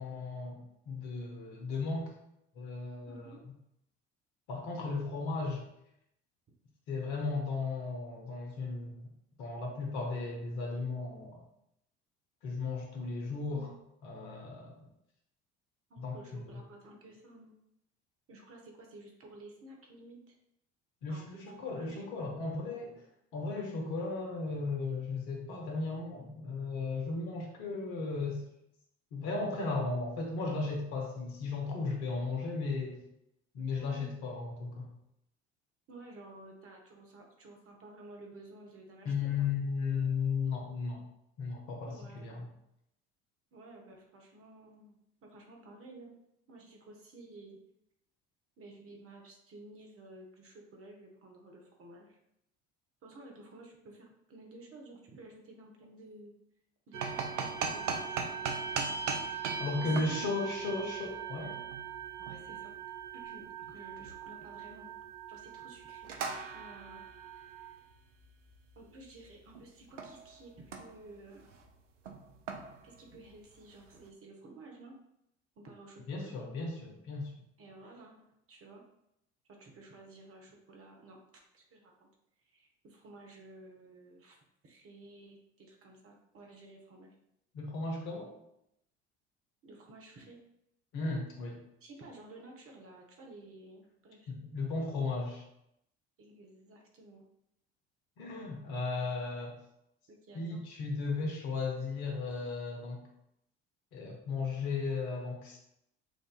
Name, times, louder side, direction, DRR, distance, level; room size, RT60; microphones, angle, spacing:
voice 1, 0.0-2.1 2.5-3.3 4.5-5.6 6.9-9.1 9.4-11.4 12.4-13.7 14.0-14.8 16.0-16.2 16.5-16.6 21.0-22.9 23.3-28.4 29.1-33.0 33.5-34.9 39.0-41.0 41.4-42.4 59.6-61.6 76.1-77.3 87.5-88.3 90.9-91.6 94.3-95.4 98.2-99.5 100.3-103.0 103.9-105.6, left 3 dB, 65° left, 1 dB, 1.1 m, -35 dB
voice 2, 3.1-3.4 13.5-13.8 15.9-17.5 18.3-20.3 21.1-22.4 33.8-34.1 35.9-39.5 41.9-42.3 43.5-46.2 46.5-47.6 48.6-52.2 53.0-56.3 56.9-58.4 58.6-60.3 62.2-62.8 63.1-64.9 65.3-66.2 66.5-67.8 68.8-71.5 72.8-75.0 75.6-76.4 77.6-78.8 79.5-81.2 81.5-82.1 82.4-84.4 84.6-87.1 89.6-90.4 91.8-94.3 96.2-97.2 100.1-100.6, right 2 dB, 40° right, 1 dB, 1.0 m, -53 dB
sound 1, 56.9-69.6 70.0-70.3 70.6-71.1 71.4-71.7 72.1-73.6, right 6 dB, 85° right, 0.5 m, -39 dB
6.3 x 2.6 x 2.3 m, 0.79 s
hypercardioid pair, 60°, 35 cm